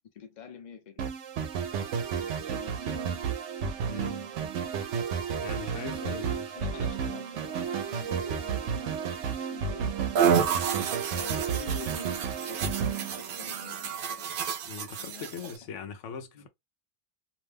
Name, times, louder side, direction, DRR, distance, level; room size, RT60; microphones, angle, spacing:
voice 1, 0.1-1.1 2.1-3.1 5.7-10.1 11.1-14.3 14.9-15.3 16.3-16.5, left 7 dB, 45° left, 0.8 m, -47 dB
sound 1, 1.0-13.9, right 6 dB, 80° right, 0.9 m, -32 dB
voice 2, 3.9-4.3 5.4-6.4 14.6-16.5, left 5 dB, 85° left, 0.9 m, -41 dB
sound 2, 10.2-15.6, right 7 dB, 60° right, 0.6 m, -30 dB
2.6 x 2.1 x 3.3 m
omnidirectional pair, 1.2 m